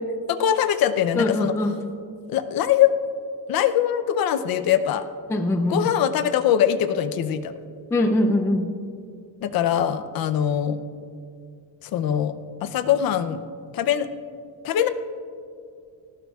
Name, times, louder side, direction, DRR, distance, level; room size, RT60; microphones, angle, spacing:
voice 1, 0.3-1.5 2.3-2.9 3.5-5.0 5.7-7.5 9.4-10.8 11.8-12.3 12.6-13.4 13.7-14.1 14.6-14.9, left 10 dB, 55° left, 10 dB, 0.6 m, -22 dB
voice 2, 1.2-1.8 5.3-5.9 7.9-8.7, left 1 dB, 5° left, 5 dB, 0.4 m, -22 dB
18.0 x 15.0 x 2.3 m, 2.3 s
cardioid pair, 160°, 42 cm